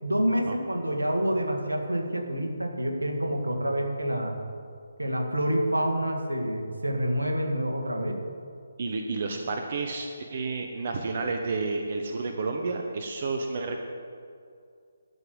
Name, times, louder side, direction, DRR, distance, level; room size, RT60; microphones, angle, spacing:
voice 1, 0.0-4.4 5.0-8.2, equal, 80° right, 2 dB, 2.0 m, -27 dB
voice 2, 8.8-13.8, right 3 dB, 45° right, 3 dB, 1.0 m, -31 dB
12.0 x 6.9 x 8.1 m, 2.3 s
figure-of-eight pair, 145°, 0 cm